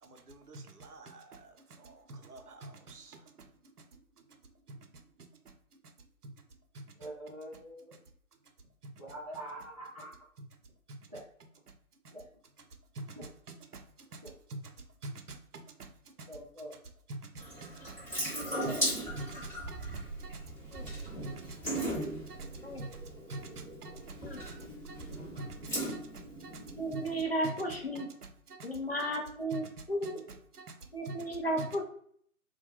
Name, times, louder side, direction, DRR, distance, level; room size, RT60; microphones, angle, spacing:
voice 1, 0.0-4.4 4.7-5.9 6.2-6.3 6.7-6.9 8.8-8.9 10.4-10.5 10.9-11.1 11.7-11.8 12.0-12.1 12.9-13.2 13.5-14.2 14.5-16.3 17.1-18.3 18.6-18.8 19.2-21.0 21.2-23.0 23.3-27.1 27.4-27.5 27.9-29.1 29.5-31.3 31.6-31.7, right 2 dB, 85° right, 5 dB, 0.6 m, -47 dB
voice 2, 7.0-8.0 9.0-10.1 11.1-11.2 12.1-12.3 13.1-13.3 14.2-14.3 16.2-16.8 18.3-18.9, right 1 dB, 25° right, -8 dB, 0.5 m, -44 dB
Water tap faucet / Sink (filling or washing) / Drip, 17.4-27.2, right 1 dB, 10° left, 0.8 m, -38 dB
voice 3, 26.8-28.1 28.6-29.6 29.9-30.2 30.9-31.8, right 1 dB, 45° left, 0 dB, 0.4 m, -34 dB
2.2 x 2.2 x 2.8 m, 0.63 s
figure-of-eight pair, 145°, 44 cm